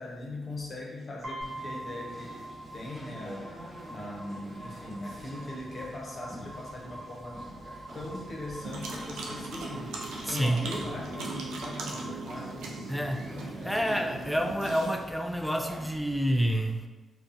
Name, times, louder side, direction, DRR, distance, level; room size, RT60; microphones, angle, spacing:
voice 1, 0.0-2.5 2.7-7.4 7.9-14.1, left 1 dB, 50° left, -2 dB, 0.6 m, -40 dB
sound 1, 1.2-13.2, right 1 dB, 55° right, 1.1 m, -45 dB
Conversation, 1.4-16.3, equal, 30° right, 1.1 m, -47 dB
sound 2, 8.6-15.0, right 2 dB, 80° right, 0.3 m, -39 dB
voice 2, 10.2-10.6 12.9-13.2 13.6-16.9, equal, ahead, 4 dB, 0.3 m, -28 dB
2.3 x 2.1 x 2.6 m, 1.2 s
supercardioid pair, 45°, 0 cm